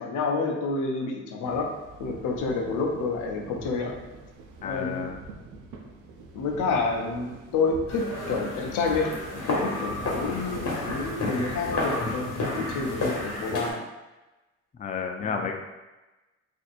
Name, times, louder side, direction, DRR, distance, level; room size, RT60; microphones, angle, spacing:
voice 1, 0.0-1.7 2.0-3.9 4.6-5.1 6.3-13.8 15.2-15.4, left 4 dB, 90° left, 2 dB, 0.6 m, -29 dB
sound 1, 1.4-13.2, right 3 dB, 85° right, 0.6 m, -45 dB
voice 2, 4.6-5.2 14.7-15.5, left 6 dB, 25° left, 3 dB, 0.4 m, -31 dB
sound 2, 7.9-13.7, left 2 dB, 55° left, 1.1 m, -31 dB
4.1 x 2.7 x 2.5 m, 1.1 s
cardioid pair, 90°, 30 cm